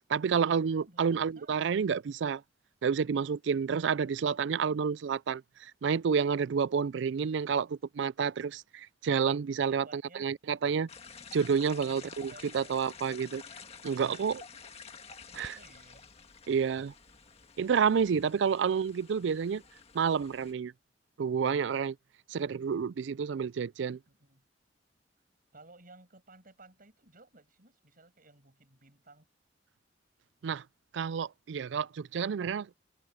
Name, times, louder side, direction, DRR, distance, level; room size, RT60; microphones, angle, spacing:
voice 1, 0.1-2.4 2.8-10.9 11.3-13.4 13.8-14.4 15.3-15.6 16.5-16.9 17.6-19.6 19.9-20.7 21.2-22.0 22.3-24.0 30.4-30.6 30.9-32.7, right 6 dB, 70° right, 0.4 m, -29 dB
voice 2, 0.8-1.5 9.6-10.3 11.5-12.7 14.5-16.1 24.1-24.4 25.5-29.3, right 2 dB, 50° right, 7.9 m, -57 dB
sound 1, 10.9-20.5, left 5 dB, 35° left, 1.6 m, -50 dB
head